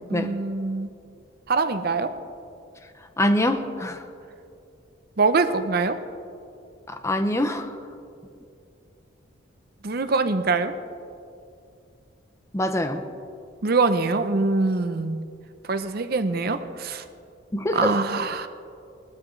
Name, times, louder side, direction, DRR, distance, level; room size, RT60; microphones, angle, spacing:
voice 1, 0.1-0.9 1.5-2.1 5.2-6.0 9.8-10.7 13.6-15.2 15.7-17.0 17.7-18.5, right 3 dB, 50° right, 9 dB, 0.7 m, -23 dB
voice 2, 3.2-4.0 6.9-7.7 12.5-13.0 17.5-17.9, left 1 dB, 15° left, 8 dB, 0.6 m, -24 dB
20.0 x 12.5 x 3.2 m, 2.5 s
head